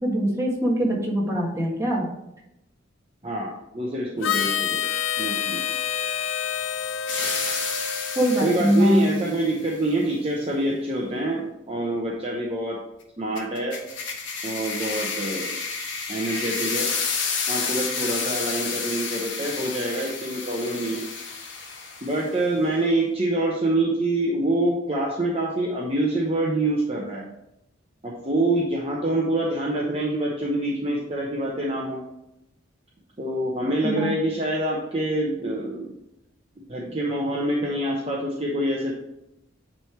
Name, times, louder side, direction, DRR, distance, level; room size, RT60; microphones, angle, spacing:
voice 1, 0.0-2.0 8.1-9.1 33.8-34.1, equal, 15° right, -3 dB, 1.5 m, -22 dB
voice 2, 3.2-4.8 5.2-5.6 8.4-12.8 13.2-13.8 14.4-15.5 16.1-16.9 17.5-21.0 22.0-27.2 28.0-32.0 33.2-36.0 36.7-38.9, right 1 dB, 30° right, -3 dB, 0.9 m, -26 dB
Harmonica, 4.2-9.0, left 8 dB, 90° left, 0.5 m, -28 dB
sound 1, 7.1-9.4 13.4-22.3, left 5 dB, 70° left, 1.2 m, -30 dB
9.5 x 3.4 x 4.5 m, 0.87 s
head